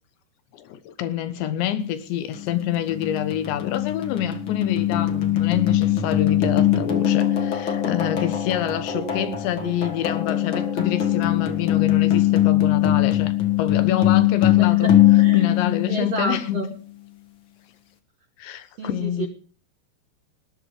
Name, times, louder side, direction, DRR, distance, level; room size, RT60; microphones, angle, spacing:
voice 1, 0.5-13.3 13.6-14.9 15.3-16.6 18.4-19.3, left 10 dB, 85° left, 3.6 m, -27 dB
sound 1, 2.3-16.5, left 12 dB, 55° left, 1.4 m, -21 dB
voice 2, 8.9-9.7 14.6-15.5 15.9-16.7 18.8-19.3, right 4 dB, 65° right, 1.6 m, -31 dB
19.5 x 12.0 x 5.0 m
omnidirectional pair, 5.0 m